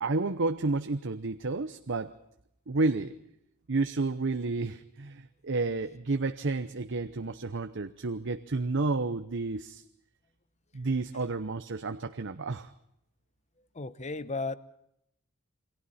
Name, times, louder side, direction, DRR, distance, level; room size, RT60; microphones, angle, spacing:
voice 1, 0.0-2.1 2.7-3.2 3.7-9.8 10.7-12.7, right 3 dB, 55° right, 9 dB, 0.8 m, -31 dB
voice 2, 13.7-14.6, left 3 dB, 30° left, 15 dB, 0.9 m, -34 dB
28.5 x 23.0 x 4.3 m, 0.77 s
head